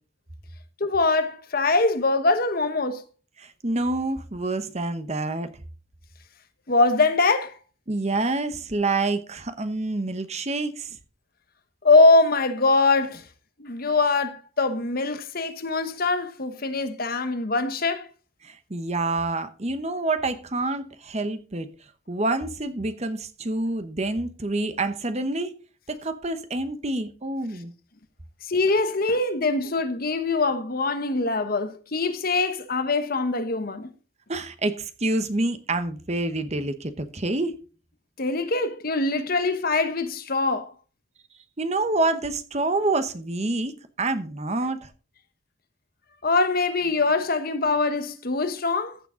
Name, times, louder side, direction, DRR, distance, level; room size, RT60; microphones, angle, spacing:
voice 1, 0.8-3.0 6.7-7.6 11.8-13.2 13.6-18.1 28.4-33.9 38.2-40.7 46.2-49.0, left 3 dB, 45° left, 1.0 m, -23 dB
voice 2, 3.4-5.5 7.9-11.0 18.4-21.7 22.1-25.5 25.9-27.7 34.3-37.6 41.6-44.9, right 2 dB, 30° right, 1.0 m, -27 dB
14.5 x 6.8 x 3.8 m
head